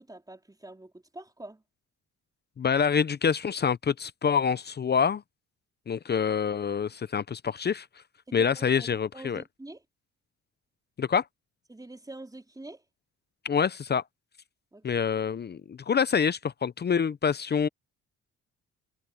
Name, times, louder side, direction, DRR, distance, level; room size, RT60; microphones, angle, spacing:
voice 1, 0.0-1.6 8.3-9.8 11.7-12.8 14.7-15.1, right 2 dB, 10° right, 4.1 m, -46 dB
voice 2, 2.6-5.2 5.9-7.9 8.3-9.4 11.0-11.2 13.4-14.0 14.8-17.7, left 6 dB, 35° left, 0.7 m, -26 dB
cardioid pair, 90°, 30 cm